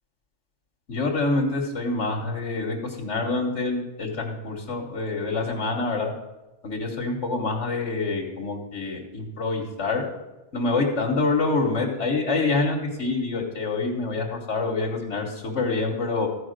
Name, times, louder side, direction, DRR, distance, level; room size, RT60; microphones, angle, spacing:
voice 1, 0.9-6.1 6.6-10.0 10.5-16.3, left 3 dB, 85° left, -1 dB, 1.6 m, -26 dB
14.0 x 4.9 x 6.5 m, 1.0 s
omnidirectional pair, 1.2 m